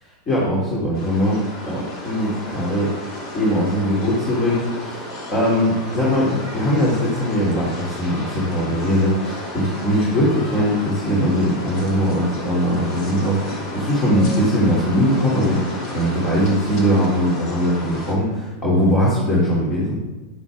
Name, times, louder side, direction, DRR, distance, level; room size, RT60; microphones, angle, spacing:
voice 1, 0.3-2.9 3.3-15.6 15.9-20.0, equal, 25° left, -6 dB, 3.2 m, -20 dB
sound 1, 0.9-18.1, left 1 dB, 40° left, 3.1 m, -33 dB
11.0 x 11.0 x 3.7 m, 1.2 s
supercardioid pair, 150°, 0 cm